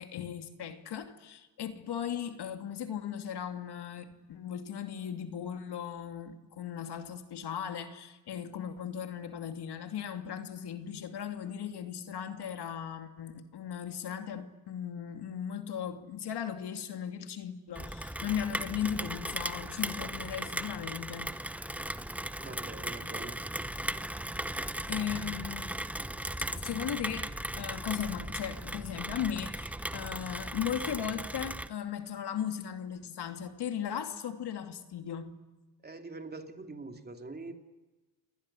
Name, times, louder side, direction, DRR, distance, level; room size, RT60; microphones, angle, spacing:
voice 1, 0.0-21.3 24.9-25.8 26.4-35.3, left 9 dB, 60° left, 2.7 m, -37 dB
Rain, 17.7-31.7, right 1 dB, 5° right, 0.9 m, -37 dB
voice 2, 22.4-23.4 35.8-37.5, right 3 dB, 20° right, 2.9 m, -44 dB
29.0 x 20.5 x 10.0 m
cardioid pair, 115°, 45 cm